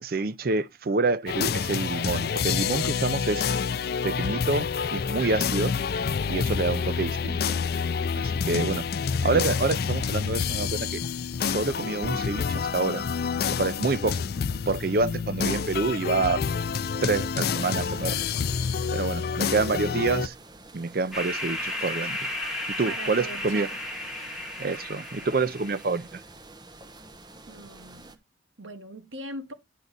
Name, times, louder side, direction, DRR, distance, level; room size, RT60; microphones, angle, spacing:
voice 1, 0.0-3.4 4.0-5.7 6.3-7.4 8.2-8.8 9.2-11.0 11.4-13.0 13.6-14.2 14.7-16.4 17.0-18.3 18.9-20.3 20.7-22.2 22.8-23.7 24.6-26.2, right 3 dB, 50° right, 0.5 m, -27 dB
sound 1, 1.3-20.3, left 6 dB, 55° left, 0.4 m, -28 dB
sound 2, 17.4-28.2, right 2 dB, 20° right, 0.8 m, -48 dB
sound 3, 21.1-25.9, left 1 dB, ahead, 1.8 m, -34 dB
voice 2, 22.9-23.8 27.5-28.2 28.6-29.5, right 2 dB, 90° right, 1.2 m, -40 dB
10.0 x 4.7 x 4.0 m
head